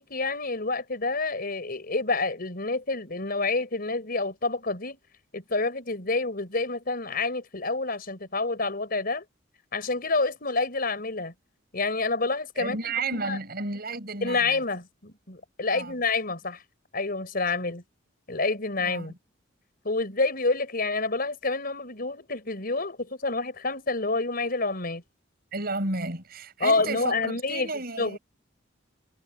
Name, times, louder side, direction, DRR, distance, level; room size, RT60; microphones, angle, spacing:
voice 1, 0.0-5.0 5.3-9.2 9.7-11.3 11.7-13.4 14.2-16.6 16.9-17.8 18.3-19.1 19.8-25.0 26.6-27.7 28.0-28.2, left 3 dB, 50° left, 5.0 m, -28 dB
voice 2, 12.6-14.6 15.7-16.0 18.8-19.2 25.5-28.2, right 3 dB, 50° right, 8.0 m, -33 dB
head